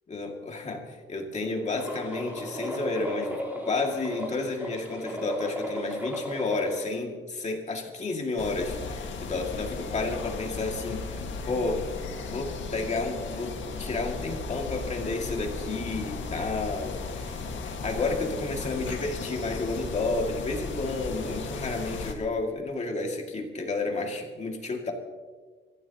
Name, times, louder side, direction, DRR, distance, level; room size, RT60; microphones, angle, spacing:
voice 1, 0.1-3.4 3.7-11.8 12.3-24.9, left 3 dB, 35° left, 1 dB, 2.3 m, -31 dB
sound 1, 1.7-6.9, equal, 10° right, 3.8 m, -35 dB
sound 2, 8.4-22.1, left 4 dB, 75° left, 1.8 m, -36 dB
25.0 x 14.5 x 3.0 m, 1.5 s
wide cardioid pair, 150°, 20 cm